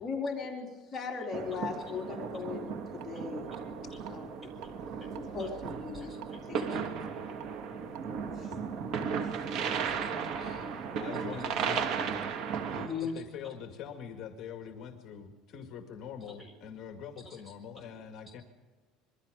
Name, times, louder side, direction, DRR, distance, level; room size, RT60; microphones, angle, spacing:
voice 1, 0.0-3.5 4.1-4.3 5.1-6.1 6.5-6.8 8.3-8.6 9.2-9.6 10.0-10.7 12.8-13.1, left 5 dB, 25° left, -1 dB, 3.7 m, -38 dB
sound 1, 1.3-12.9, right 6 dB, 55° right, 2.9 m, -35 dB
voice 2, 2.0-2.4 3.1-3.6 4.4-5.1 5.4-6.8 9.7-10.1 11.3-11.6 13.0-13.1 13.4-13.5 16.4-16.5 17.2-17.4 17.8-17.9, left 1 dB, 10° right, 5 dB, 6.5 m, -55 dB
sound 2, 3.0-3.1 3.5-4.1 4.5-4.7 5.1-6.3 6.8-8.6 9.0-9.1, right 11 dB, 90° right, 2.8 m, -48 dB
voice 3, 10.7-12.0 13.0-18.4, left 7 dB, 45° left, 4 dB, 2.2 m, -44 dB
26.5 x 22.5 x 5.2 m, 1.3 s
cardioid pair, 145°, 0 cm